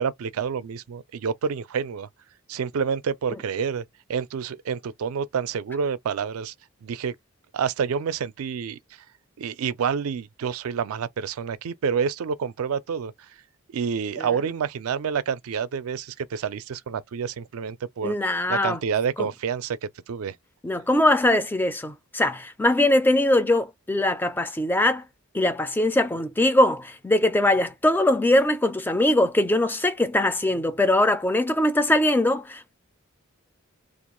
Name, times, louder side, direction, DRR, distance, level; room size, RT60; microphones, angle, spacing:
voice 1, 0.0-2.1 2.5-3.8 4.1-6.5 6.8-7.1 7.5-8.8 9.4-13.1 13.7-20.4, right 6 dB, 75° right, 0.4 m, -28 dB
voice 2, 18.0-18.8 19.2-19.3 20.6-25.0 25.3-32.7, left 1 dB, 10° left, 0.3 m, -21 dB
2.4 x 2.2 x 3.0 m
head